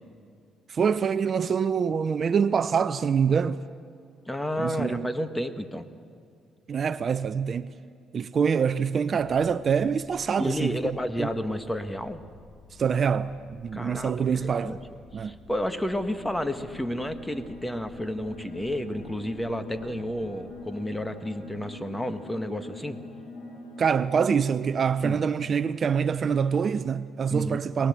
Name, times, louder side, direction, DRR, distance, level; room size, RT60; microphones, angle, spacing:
voice 1, 0.7-3.6 4.6-5.1 6.7-7.7 8.1-10.8 11.2-11.3 12.7-14.8 15.1-15.4 23.8-27.9, right 6 dB, 45° right, 0.6 m, -25 dB
voice 2, 4.3-5.8 10.4-12.2 13.7-14.8 15.1-23.0 25.0-25.2 27.3-27.6, left 1 dB, 10° left, 1.6 m, -31 dB
sound 1, 9.2-22.0, left 4 dB, 45° left, 2.2 m, -53 dB
sound 2, 15.9-25.0, left 1 dB, 80° left, 6.0 m, -44 dB
23.0 x 19.5 x 7.5 m
supercardioid pair, 80°, 0 cm